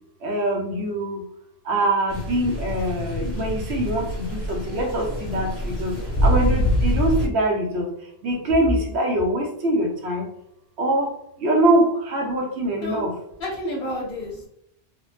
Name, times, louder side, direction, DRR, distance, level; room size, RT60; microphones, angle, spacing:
voice 1, 0.2-1.2 1.7-5.9 6.2-7.9 8.2-10.2 10.8-11.1 11.4-13.1, right 1 dB, 80° right, 1 dB, 1.1 m, -23 dB
sound 1, 2.1-7.3, equal, 15° left, 1.0 m, -25 dB
voice 2, 13.4-14.5, left 1 dB, 55° left, -3 dB, 0.9 m, -30 dB
3.4 x 2.1 x 3.2 m, 0.75 s
omnidirectional pair, 1.1 m